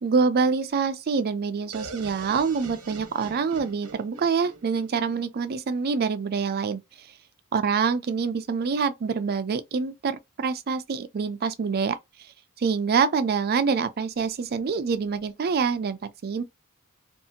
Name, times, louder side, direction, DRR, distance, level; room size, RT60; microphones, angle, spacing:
voice 1, 0.0-7.1 7.5-12.0 12.6-16.4, right 5 dB, 45° right, 0.4 m, -26 dB
sound 1, 1.7-5.5, right 3 dB, 75° right, 0.7 m, -43 dB
2.7 x 2.4 x 2.6 m
head